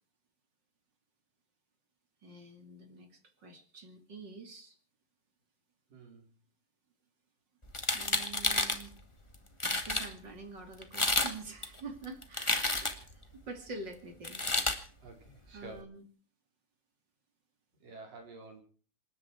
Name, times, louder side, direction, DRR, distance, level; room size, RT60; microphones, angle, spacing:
voice 1, 2.2-4.8 7.9-8.9 9.6-13.0 13.5-14.4 15.5-16.0, right 3 dB, 35° right, 6 dB, 2.8 m, -46 dB
voice 2, 5.9-6.3 12.8-13.1 15.0-15.9 17.8-18.6, right 2 dB, 65° right, 3 dB, 6.1 m, -50 dB
sound 1, 7.7-8.8 9.3-9.4 9.6-10.1 10.8-11.3 11.6-13.1 14.2-14.8, left 2 dB, 20° left, 0.7 m, -30 dB
27.0 x 11.0 x 4.6 m, 0.41 s
omnidirectional pair, 4.1 m